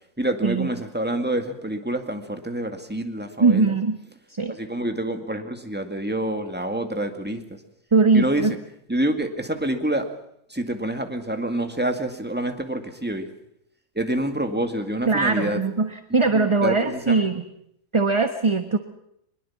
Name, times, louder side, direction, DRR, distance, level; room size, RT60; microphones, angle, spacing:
voice 1, 0.2-3.7 4.5-7.6 8.1-8.5 8.9-10.1 10.5-13.3 14.0-15.6 16.3-17.3, right 1 dB, 5° right, 5 dB, 2.0 m, -27 dB
voice 2, 3.4-4.0 4.3-4.6 7.9-8.5 15.1-17.4 17.9-18.8, right 4 dB, 20° right, 8 dB, 1.1 m, -21 dB
23.0 x 21.5 x 7.3 m, 0.74 s
omnidirectional pair, 1.6 m